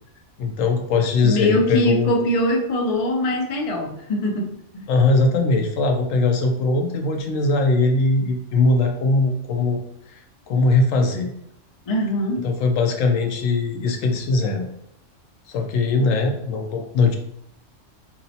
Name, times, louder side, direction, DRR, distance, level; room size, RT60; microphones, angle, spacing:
voice 1, 0.4-2.1 4.9-9.8 10.1-10.2 10.5-11.3 12.4-14.7 15.5-17.1, left 3 dB, 80° left, 3 dB, 1.0 m, -20 dB
voice 2, 1.2-4.9 11.9-12.5, left 1 dB, 55° left, 1 dB, 0.3 m, -22 dB
4.4 x 2.0 x 2.7 m, 0.75 s
omnidirectional pair, 1.3 m